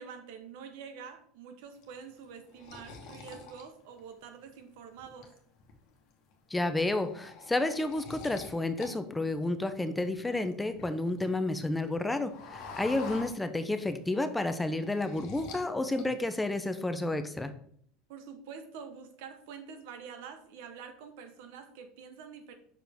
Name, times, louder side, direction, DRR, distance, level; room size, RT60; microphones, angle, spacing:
voice 1, 0.0-5.3 18.1-22.5, right 6 dB, 75° right, 7 dB, 1.0 m, -46 dB
sound 1, 1.8-4.5 5.0-5.7 6.1-6.3 6.6-8.9 9.2-11.3 11.6-13.9 14.2-15.7 15.9-16.5, left 4 dB, 60° left, 1.2 m, -47 dB
voice 2, 6.5-17.5, left 2 dB, 10° left, 9 dB, 0.5 m, -31 dB
5.8 x 4.7 x 3.5 m, 0.62 s
supercardioid pair, 110°, 0 cm